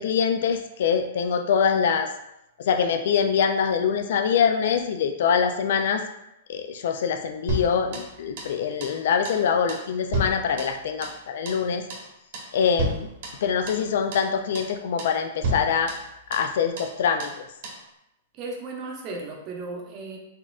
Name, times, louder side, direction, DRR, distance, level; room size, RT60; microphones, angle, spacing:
voice 1, 0.0-2.1 2.6-6.0 6.5-11.8 12.5-13.1 13.4-15.9 16.3-17.4, left 7 dB, 65° left, 6 dB, 0.3 m, -24 dB
sound 1, 7.5-8.6 8.8-9.0 9.2-9.4 9.7-11.2 11.5-11.6 11.9-12.1 12.3-12.5 12.8-13.9 14.1-14.3 14.5-14.7 15.0-15.2 15.4-16.5 16.8-16.9 17.2-17.4 17.6-17.8, right 1 dB, 55° right, 1.0 m, -32 dB
voice 2, 18.3-20.2, right 3 dB, 30° right, 0 dB, 0.7 m, -35 dB
4.2 x 3.6 x 2.4 m, 0.85 s
supercardioid pair, 160°, 0 cm